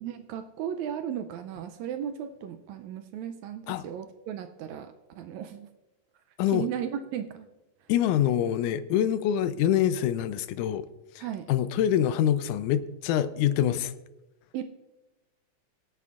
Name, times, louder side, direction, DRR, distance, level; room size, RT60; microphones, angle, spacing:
voice 1, 0.0-5.7 6.5-7.5 11.2-11.5 14.5-14.6, right 9 dB, 80° right, 1.7 m, -35 dB
voice 2, 7.9-10.9 11.2-11.3 11.5-13.9, left 10 dB, 85° left, 2.0 m, -25 dB
23.5 x 8.3 x 2.4 m
omnidirectional pair, 3.6 m